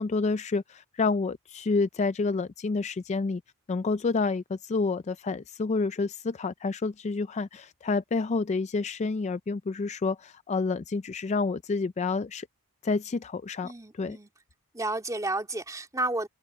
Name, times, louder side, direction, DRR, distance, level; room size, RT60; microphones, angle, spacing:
voice 1, 0.0-3.4 3.7-12.5 12.8-14.2, left 4 dB, 30° left, 0.4 m, -29 dB
voice 2, 13.6-14.3 14.7-16.3, right 2 dB, 15° right, 2.8 m, -31 dB
open air
head